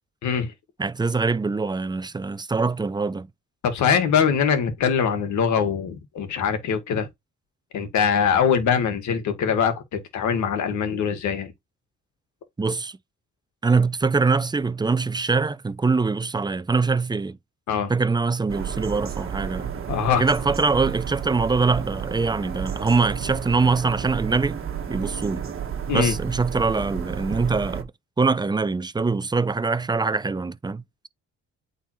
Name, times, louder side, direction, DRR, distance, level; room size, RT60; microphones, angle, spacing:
voice 1, 0.8-3.3 12.6-13.0 13.6-17.4 17.9-19.7 20.2-24.6 24.9-25.5 25.9-27.9 28.2-31.1, right 4 dB, 15° right, 0.5 m, -23 dB
voice 2, 3.6-7.1 7.7-11.5 17.7-17.9 19.9-20.3 25.9-26.1, left 7 dB, 80° left, 1.8 m, -22 dB
sound 1, 18.5-27.8, right 8 dB, 45° right, 1.4 m, -32 dB
8.8 x 3.8 x 3.1 m
cardioid pair, 90°, 29 cm